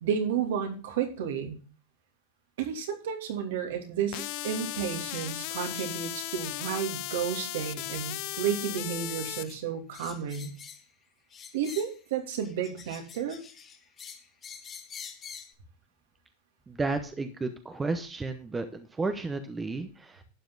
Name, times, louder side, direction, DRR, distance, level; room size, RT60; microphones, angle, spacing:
voice 1, 0.0-1.6 2.6-10.5 11.5-13.4, right 8 dB, 75° right, 3 dB, 2.8 m, -32 dB
sound 1, 4.1-9.4, left 17 dB, 50° left, 0.7 m, -36 dB
sound 2, 4.1-4.2 4.7-4.8 5.1-5.2 5.7-6.1 6.5-6.8 7.1-7.3 7.7-7.9 8.2-8.5 9.0-9.6 9.9-10.9 11.3-12.0 12.4-15.5, left 7 dB, 20° left, 1.4 m, -47 dB
voice 2, 16.7-20.2, right 3 dB, 10° right, 7 dB, 0.8 m, -32 dB
12.0 x 8.8 x 3.9 m, 0.35 s
supercardioid pair, 160°, 0 cm